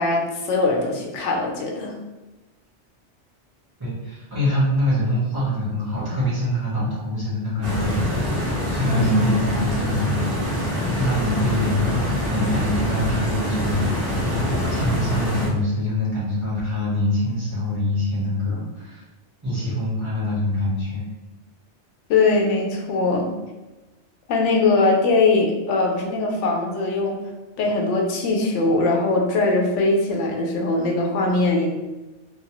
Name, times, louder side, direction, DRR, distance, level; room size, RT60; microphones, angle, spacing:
voice 1, 0.0-1.9 8.8-9.3 22.1-23.3 24.3-27.2 27.6-31.7, left 3 dB, 85° left, 0 dB, 0.9 m, -21 dB
voice 2, 3.8-10.7 10.9-14.4 14.7-19.0 19.4-21.0, left 1 dB, 20° right, -10 dB, 1.2 m, -25 dB
Stream, 7.6-15.5, left 1 dB, 35° right, 1.4 m, -24 dB
2.9 x 2.3 x 2.9 m, 1.1 s
omnidirectional pair, 1.2 m